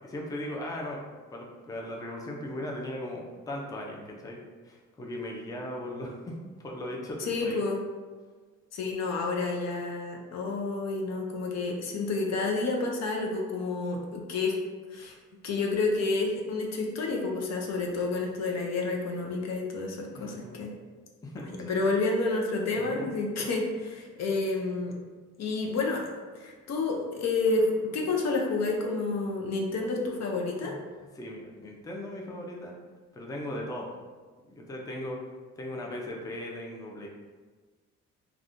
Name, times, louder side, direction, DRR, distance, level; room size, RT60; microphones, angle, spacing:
voice 1, 0.0-4.4 4.6-6.3 6.6-7.6 20.1-20.7 21.2-21.8 22.8-23.1 30.6-30.8 31.1-32.7 33.1-33.9 34.5-35.2 35.6-37.1, left 1 dB, 10° left, -1 dB, 0.4 m, -38 dB
voice 2, 7.2-7.8 8.7-14.6 14.9-15.1 15.4-20.7 21.6-24.9 25.4-30.7, left 3 dB, 60° left, 0 dB, 0.6 m, -29 dB
3.4 x 2.3 x 2.5 m, 1.4 s
cardioid pair, 90°, 30 cm